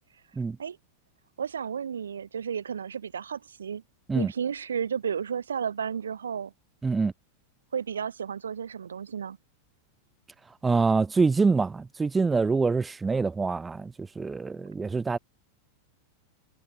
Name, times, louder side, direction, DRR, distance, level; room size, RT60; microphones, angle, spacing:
voice 1, 1.4-3.8 4.1-6.5 7.7-9.4, right 7 dB, 70° right, 4.6 m, -32 dB
voice 2, 6.8-7.1 10.6-15.2, right 4 dB, 15° right, 1.7 m, -25 dB
figure-of-eight pair, 90°, 0 cm